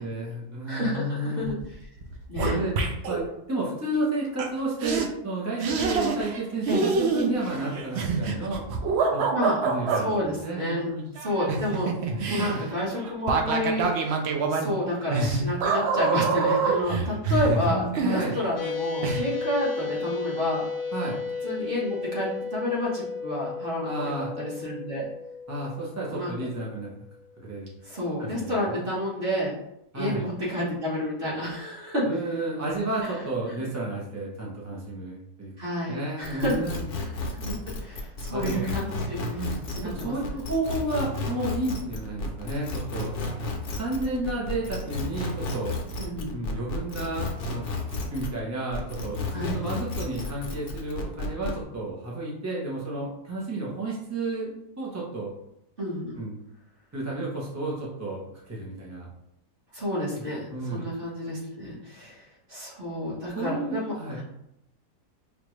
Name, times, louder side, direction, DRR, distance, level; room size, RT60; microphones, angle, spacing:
voice 1, 0.0-1.6 2.5-8.6 9.1-9.3 9.6-11.1 12.4-12.6 17.6-18.4 20.9-21.2 23.8-24.3 25.5-26.9 27.4-27.7 28.2-28.8 29.9-30.2 32.0-35.5 35.9-36.8 38.3-38.7 39.3-39.6 39.8-43.1 43.7-45.7 46.3-54.5 54.8-55.3 56.2-56.4 56.9-59.1 60.5-60.8 63.3-64.2, right 2 dB, 15° right, -5 dB, 0.5 m, -32 dB
voice 2, 0.7-1.5 2.3-2.6 6.7-6.9 9.3-9.6 10.0-10.9 11.2-11.9 12.3-14.2 14.5-20.6 21.4-25.0 26.1-26.3 27.8-29.5 29.9-32.1 35.6-36.6 37.4-39.2 39.7-40.1 46.0-46.3 49.3-49.5 55.8-56.1 59.7-62.2 62.5-64.2, left 1 dB, 35° right, -6 dB, 1.4 m, -30 dB
sound 1, 1.4-1.7 2.0-3.2 4.4-4.5 4.8-5.1 5.6-6.4 6.7-10.0 11.2-18.7 19.0-19.2, right 4 dB, 70° right, 0.6 m, -26 dB
sound 2, 18.6-27.2, left 5 dB, 90° left, 1.1 m, -34 dB
sound 3, 36.2-48.4 48.7-51.6, left 2 dB, 55° left, 0.6 m, -32 dB
4.9 x 2.5 x 3.1 m, 0.81 s
omnidirectional pair, 1.7 m